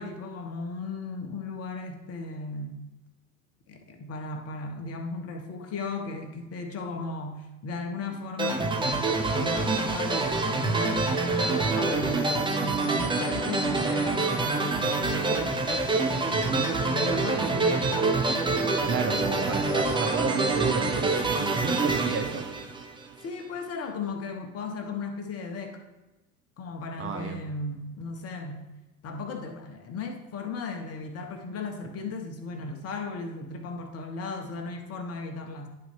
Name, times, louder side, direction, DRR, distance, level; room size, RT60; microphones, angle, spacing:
voice 1, 0.0-2.8 3.7-15.6 16.8-18.0 23.2-25.8 26.6-28.7 29.0-35.7, left 3 dB, 35° left, 4 dB, 1.3 m, -36 dB
sound 1, 8.4-23.2, right 3 dB, 10° right, 0.8 m, -26 dB
voice 2, 16.3-16.7 17.3-17.5 18.8-22.5 27.0-27.4, right 5 dB, 30° right, 4 dB, 1.2 m, -31 dB
10.5 x 4.0 x 4.7 m, 1.0 s
hypercardioid pair, 95°, 44 cm